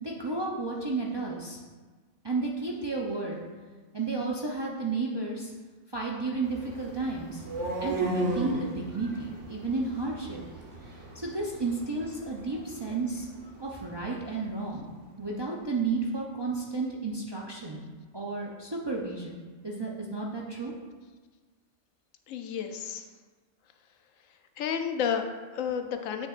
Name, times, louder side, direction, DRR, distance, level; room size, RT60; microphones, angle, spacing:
voice 1, 0.0-1.6 2.2-3.4 3.9-5.5 5.9-7.4 7.8-10.4 11.1-13.3 13.6-14.9 15.2-17.8 18.1-20.7, right 3 dB, 30° right, -3 dB, 0.5 m, -32 dB
sound 1, 6.4-14.4, right 2 dB, 70° right, 1.4 m, -37 dB
voice 2, 22.3-23.1 24.6-26.3, left 7 dB, 85° left, 6 dB, 1.0 m, -31 dB
8.0 x 6.5 x 2.5 m, 1.4 s
omnidirectional pair, 1.3 m